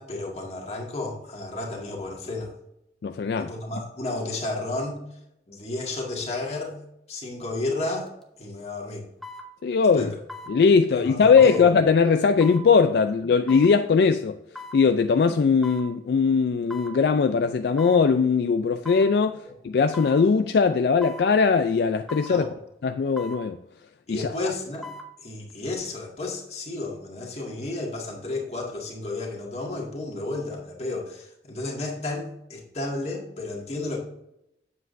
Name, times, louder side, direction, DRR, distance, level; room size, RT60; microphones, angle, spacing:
voice 1, 0.0-2.5 3.4-5.0 5.5-6.8 7.1-8.1 8.4-9.1 10.0-10.1 10.9-11.6 22.3-22.5 24.1-24.9 25.2-34.0, left 2 dB, 35° left, 1.8 m, -32 dB
voice 2, 3.0-3.5 9.6-10.1 10.5-14.4 14.7-22.5 22.8-23.6 24.1-24.4, left 5 dB, 65° left, 0.3 m, -20 dB
sound 1, 8.1-8.2 9.2-9.5 10.3-10.5 11.4-11.6 12.4-12.6 13.5-13.7 14.5-14.8 15.6-15.9 16.7-17.0 17.8-18.0 18.8-19.1 19.9-20.2 21.0-21.3 22.1-22.4 23.2-23.4 24.6-25.1 25.5-25.6, left 2 dB, ahead, 0.8 m, -39 dB
7.9 x 7.4 x 2.6 m
head